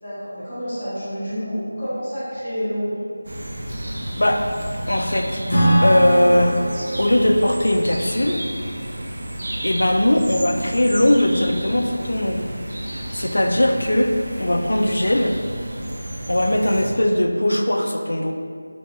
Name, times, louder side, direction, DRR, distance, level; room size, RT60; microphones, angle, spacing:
voice 1, 0.0-3.0, equal, 10° left, -23 dB, 0.8 m, -28 dB
sound 1, 3.2-16.9, right 1 dB, 55° right, 0.5 m, -31 dB
voice 2, 4.9-5.4 5.8-6.6 7.0-8.4 9.6-12.5 12.9-15.3 16.3-18.3, left 1 dB, 80° left, 4 dB, 0.3 m, -19 dB
Acoustic guitar / Strum, 5.5-9.1, right 1 dB, 55° left, 0.8 m, -23 dB
3.4 x 2.3 x 2.9 m, 2.2 s
figure-of-eight pair, 175°, 0 cm